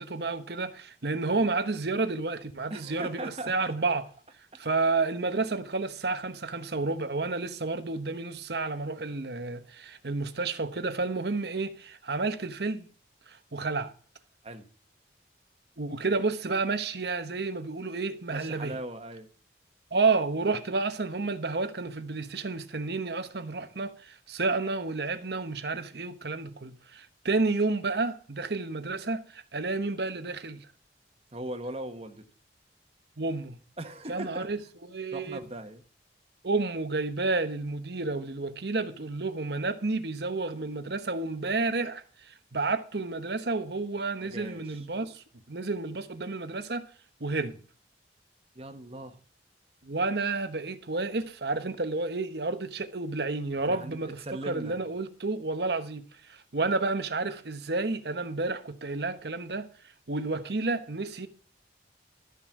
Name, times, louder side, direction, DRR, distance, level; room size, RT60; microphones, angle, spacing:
voice 1, 0.0-4.0 4.6-12.9 13.3-13.9 15.8-18.8 19.9-30.7 33.2-33.6 34.1-34.6 34.9-35.4 36.4-46.9 47.2-47.6 49.8-54.2 54.5-59.7 60.1-61.3, right 3 dB, 65° right, 1.1 m, -30 dB
voice 2, 2.7-3.7 4.5-4.6 14.4-14.7 18.3-19.3 31.3-32.2 33.8-34.5 35.1-35.8 44.2-44.9 48.5-49.2 53.5-54.8, right 1 dB, 35° right, 1.3 m, -39 dB
13.5 x 5.4 x 7.4 m
head